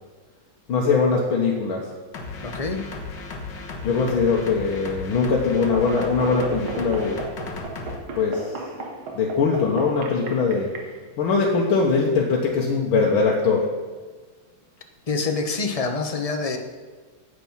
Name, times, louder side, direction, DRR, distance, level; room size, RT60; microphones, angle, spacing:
voice 1, 0.7-1.9 3.8-7.2 8.2-8.5 9.1-10.7 11.2-13.7, left 4 dB, 75° left, -1 dB, 2.0 m, -21 dB
sound 1, 2.1-8.0, left 3 dB, 60° left, 2.0 m, -35 dB
voice 2, 2.4-2.8 15.1-16.6, left 4 dB, 30° left, 5 dB, 0.7 m, -26 dB
sound 2, 5.6-10.9, right 3 dB, 90° right, 2.3 m, -35 dB
9.7 x 8.3 x 7.3 m, 1.4 s
omnidirectional pair, 2.2 m